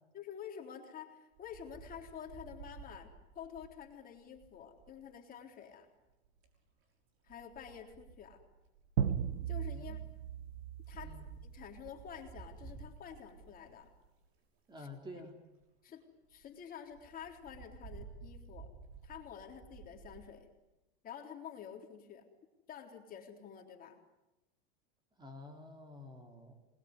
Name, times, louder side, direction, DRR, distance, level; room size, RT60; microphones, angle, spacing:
voice 1, 0.1-5.9 7.2-8.4 9.5-10.0 10.9-11.1 11.4-13.9 14.8-14.9 15.8-16.0 16.3-18.7 19.0-20.5 21.0-22.3 22.7-24.0, left 8 dB, 30° left, 3 dB, 3.7 m, -49 dB
Wind, 1.4-5.0 6.1-6.6 7.3-14.3 14.9-15.0 15.2-15.3 15.6-15.7 16.0-16.1 16.3-16.5 16.9-20.3, right 5 dB, 40° right, 6.0 m, -53 dB
sound 1, 9.0-11.8, right 8 dB, 85° right, 2.0 m, -36 dB
voice 2, 10.9-11.2 14.7-15.4 25.2-26.5, left 1 dB, 15° right, 4 dB, 3.6 m, -50 dB
27.5 x 21.0 x 9.7 m, 0.98 s
supercardioid pair, 135°, 31 cm